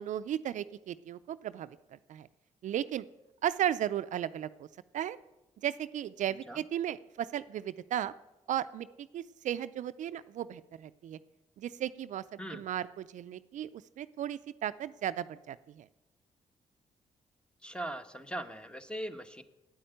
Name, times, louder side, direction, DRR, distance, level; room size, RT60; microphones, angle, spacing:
voice 1, 0.0-2.3 2.6-3.1 3.4-4.7 4.9-5.2 5.6-8.1 8.5-11.2 11.6-15.9, right 11 dB, 75° right, 14 dB, 0.4 m, -35 dB
voice 2, 17.6-19.4, right 1 dB, 5° left, 9 dB, 1.3 m, -40 dB
9.1 x 8.5 x 9.1 m, 0.95 s
supercardioid pair, 55°, 13 cm